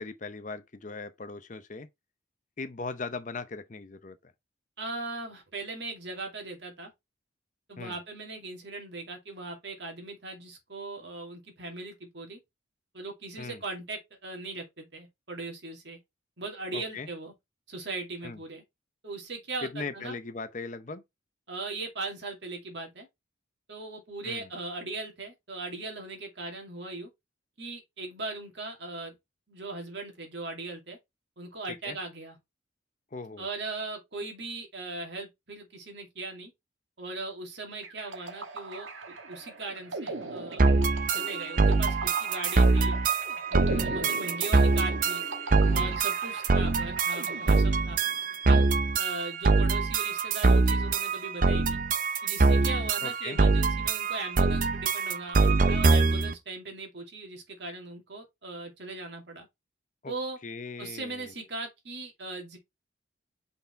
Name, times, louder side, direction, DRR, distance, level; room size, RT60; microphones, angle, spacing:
voice 1, 0.0-1.9 2.6-4.3 7.8-8.0 13.4-13.6 16.7-17.1 18.2-18.4 19.6-21.0 24.2-24.5 31.8-32.0 33.1-33.5 43.7-44.1 45.6-46.0 53.0-53.4 60.0-60.1 60.4-61.3, left 4 dB, 40° left, 0.6 m, -39 dB
voice 2, 4.8-6.9 7.7-12.4 12.9-16.0 16.4-17.3 17.7-18.6 19.0-20.2 21.5-23.1 23.7-27.1 27.6-29.1 29.5-31.0 31.4-32.4 33.4-36.5 37.0-40.6 41.1-43.0 43.5-45.2 45.7-48.0 48.5-48.6 49.0-51.8 52.2-59.5 60.1-60.4 60.8-62.6, right 3 dB, 60° right, 2.4 m, -39 dB
sound 1, 37.8-48.3, right 2 dB, 80° right, 1.4 m, -40 dB
sound 2, 40.6-56.3, right 4 dB, 40° right, 0.6 m, -24 dB
5.7 x 4.2 x 4.3 m
head